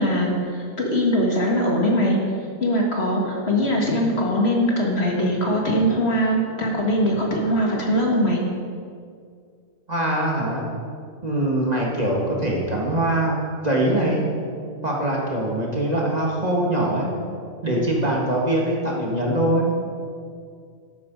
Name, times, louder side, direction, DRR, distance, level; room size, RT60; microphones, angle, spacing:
voice 1, 0.0-8.4, equal, 45° left, -1 dB, 1.7 m, -21 dB
voice 2, 9.9-10.7 11.2-13.4 13.6-14.3 14.8-17.1 17.6-19.7, right 1 dB, 30° right, -3 dB, 1.8 m, -22 dB
12.0 x 8.6 x 5.3 m, 2.2 s
omnidirectional pair, 1.5 m